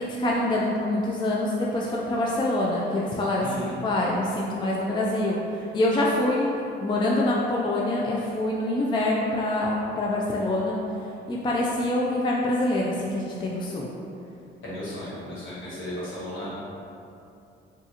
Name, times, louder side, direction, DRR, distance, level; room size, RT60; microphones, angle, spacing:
voice 1, 0.2-6.5 6.8-10.8 11.3-13.9, left 1 dB, 25° left, -3 dB, 0.3 m, -25 dB
voice 2, 3.4-3.7 14.6-16.6, left 1 dB, 75° left, -9 dB, 1.3 m, -35 dB
3.7 x 2.4 x 2.8 m, 2.7 s
cardioid pair, 90°, 20 cm